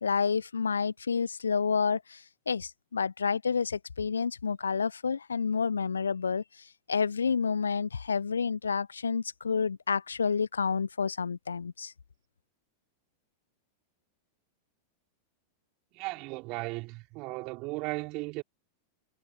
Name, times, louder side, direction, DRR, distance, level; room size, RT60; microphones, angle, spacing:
voice 1, 0.0-6.4 6.9-11.9, left 5 dB, 75° left, 0.7 m, -29 dB
voice 2, 15.9-18.4, right 25 dB, 40° right, 5.5 m, -36 dB
figure-of-eight pair, 90°, 0 cm